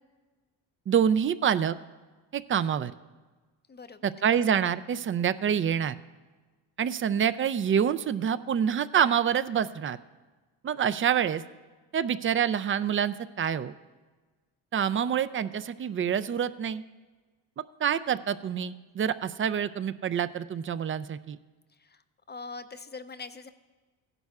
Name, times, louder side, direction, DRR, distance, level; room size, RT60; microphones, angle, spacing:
voice 1, 0.9-1.8 2.3-2.9 4.0-6.0 6.8-10.0 10.6-11.4 11.9-13.7 14.7-16.8 17.8-21.4, right 8 dB, 30° right, 14 dB, 0.4 m, -26 dB
voice 2, 3.7-4.1 21.7-22.0 22.3-23.5, left 4 dB, 25° left, 11 dB, 0.5 m, -42 dB
16.5 x 11.0 x 2.4 m, 1.3 s
supercardioid pair, 70°, 46 cm